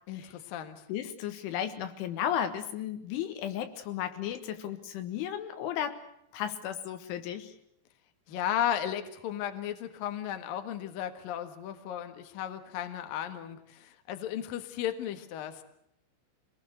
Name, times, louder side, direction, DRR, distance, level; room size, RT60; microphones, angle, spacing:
voice 1, 0.1-0.9 8.3-15.6, left 10 dB, 60° left, 7 dB, 2.8 m, -35 dB
voice 2, 0.9-6.0 6.3-7.5, left 10 dB, 80° left, 8 dB, 3.9 m, -34 dB
25.0 x 19.5 x 8.0 m, 0.73 s
omnidirectional pair, 5.6 m